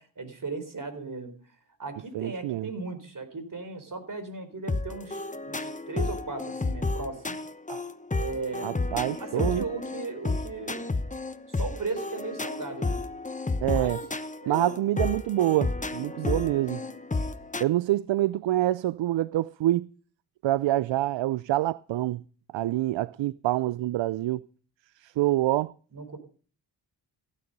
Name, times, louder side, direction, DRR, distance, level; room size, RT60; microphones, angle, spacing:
voice 1, 0.0-1.3 1.8-7.4 8.2-8.8 9.2-10.9 11.5-13.0 13.7-13.9 14.4-14.8 16.1-16.9 25.9-26.2, right 3 dB, 45° right, 4.1 m, -37 dB
voice 2, 2.1-2.7 7.7-7.8 8.6-9.6 13.6-14.0 14.5-16.8 17.6-19.9 20.4-22.2 22.5-24.4 25.0-25.7, right 15 dB, 70° right, 0.5 m, -26 dB
sound 1, 4.7-17.6, left 3 dB, 15° left, 1.0 m, -31 dB
15.5 x 9.8 x 5.4 m
cardioid pair, 50°, 46 cm